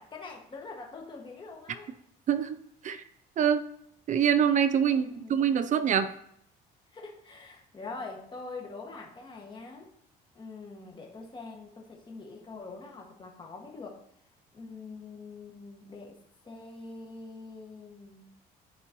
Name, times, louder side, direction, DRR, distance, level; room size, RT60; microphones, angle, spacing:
voice 1, 0.0-1.9 4.9-5.4 6.9-9.9 10.4-14.0 14.5-16.2 16.4-18.3, left 3 dB, 30° left, 0 dB, 1.7 m, -44 dB
voice 2, 2.3-2.6 2.8-3.0 3.4-3.6 4.1-6.1, right 8 dB, 50° right, 11 dB, 0.5 m, -25 dB
10.5 x 4.5 x 3.0 m, 0.71 s
cardioid pair, 110°, 17 cm